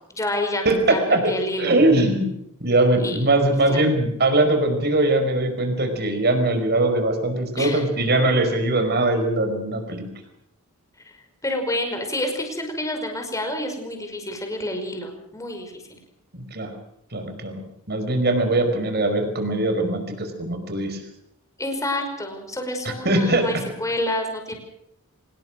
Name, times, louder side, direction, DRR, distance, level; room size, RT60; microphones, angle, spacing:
voice 1, 0.1-1.7 3.0-3.2 3.7-3.9 7.6-7.9 11.4-16.0 21.6-24.5, left 1 dB, 15° left, 4 dB, 5.2 m, -28 dB
voice 2, 0.6-1.3 1.6-2.3 2.6-10.1 16.3-16.7 17.1-17.6 17.9-21.0 23.0-23.6, right 2 dB, 50° right, 6 dB, 5.2 m, -21 dB
26.0 x 20.0 x 6.3 m, 0.74 s
head